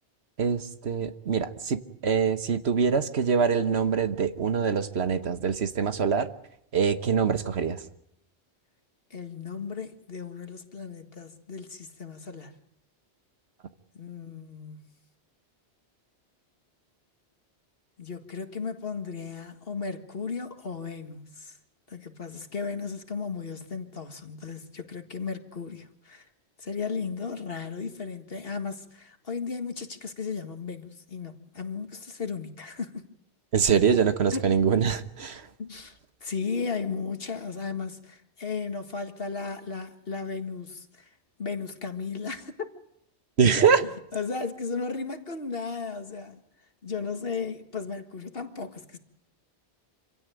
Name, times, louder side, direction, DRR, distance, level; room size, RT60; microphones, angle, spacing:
voice 1, 0.4-6.3 6.7-7.8 33.5-35.4 43.4-43.8, right 6 dB, 70° right, 1.4 m, -24 dB
voice 2, 9.1-12.5 13.9-14.8 18.0-21.6 21.9-26.3 26.6-33.1 33.9-34.0 34.3-34.5 35.6-41.1 41.4-42.7 43.5-46.4 46.8-49.0, left 5 dB, 55° left, 2.0 m, -35 dB
26.5 x 16.5 x 9.2 m
omnidirectional pair, 1.1 m